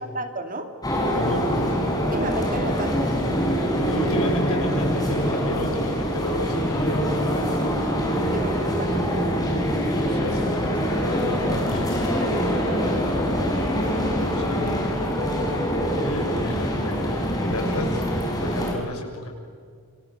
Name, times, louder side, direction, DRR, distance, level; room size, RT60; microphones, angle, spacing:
voice 1, 0.1-0.7 2.1-3.1 8.2-9.0 12.8-13.5, right 2 dB, 40° right, 6 dB, 2.5 m, -33 dB
sound 1, 0.8-18.7, equal, 15° left, 4.8 m, -24 dB
voice 2, 1.1-1.5 3.5-7.0 9.9-12.1 14.3-14.9 15.9-18.0 18.4-19.3, left 1 dB, 80° left, 3 dB, 6.4 m, -32 dB
28.5 x 27.0 x 6.7 m, 2.1 s
head